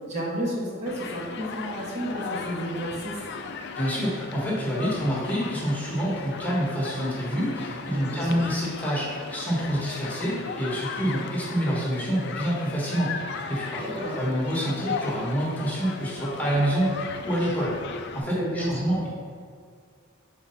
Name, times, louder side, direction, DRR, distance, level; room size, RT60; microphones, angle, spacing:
voice 1, 0.0-3.2 7.9-8.4 13.8-14.2 18.3-18.9, equal, 35° right, -5 dB, 1.3 m, -32 dB
Human group actions, 0.9-18.2, left 5 dB, 55° left, 0.4 m, -37 dB
voice 2, 3.8-19.1, equal, 10° left, -6 dB, 1.3 m, -27 dB
4.7 x 3.9 x 5.6 m, 2.1 s
head